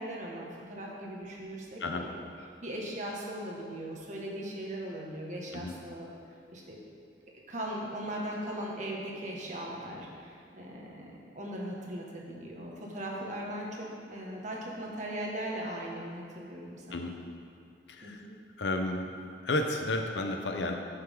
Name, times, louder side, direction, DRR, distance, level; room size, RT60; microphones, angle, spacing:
voice 1, 0.0-2.2 2.6-6.1 6.5-6.8 7.5-17.1 18.0-18.3, right 1 dB, 45° right, -3 dB, 1.7 m, -39 dB
voice 2, 18.6-19.1 19.4-20.7, left 2 dB, 80° left, 4 dB, 0.7 m, -31 dB
14.0 x 6.5 x 3.8 m, 2.5 s
head